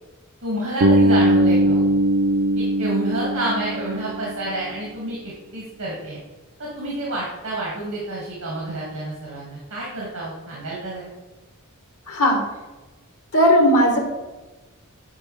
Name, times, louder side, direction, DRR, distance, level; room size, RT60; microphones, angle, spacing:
voice 1, 0.4-1.9 2.6-5.2 5.5-6.2 6.6-11.1, right 1 dB, 85° right, -5 dB, 2.3 m, -29 dB
Bass guitar, 0.8-4.8, right 1 dB, 65° right, 0.6 m, -20 dB
voice 2, 12.1-12.5 13.3-14.0, equal, 75° left, 2 dB, 1.4 m, -16 dB
9.8 x 5.3 x 3.4 m, 1.2 s
head